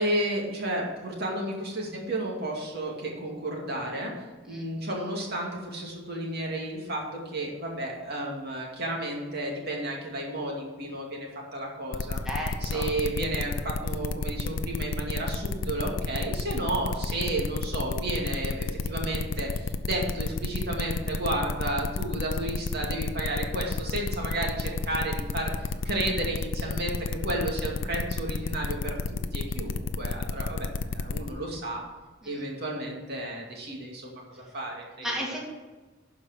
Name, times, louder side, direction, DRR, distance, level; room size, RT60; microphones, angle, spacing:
voice 1, 0.0-4.1 4.4-12.2 12.6-31.8 32.2-35.1, right 1 dB, 55° right, -1 dB, 2.3 m, -32 dB
sound 1, 11.9-31.3, left 3 dB, 70° left, 0.6 m, -31 dB
voice 2, 12.3-12.9 32.2-32.3 35.0-35.4, equal, 5° right, -3 dB, 2.0 m, -33 dB
12.0 x 4.9 x 6.6 m, 1.3 s
head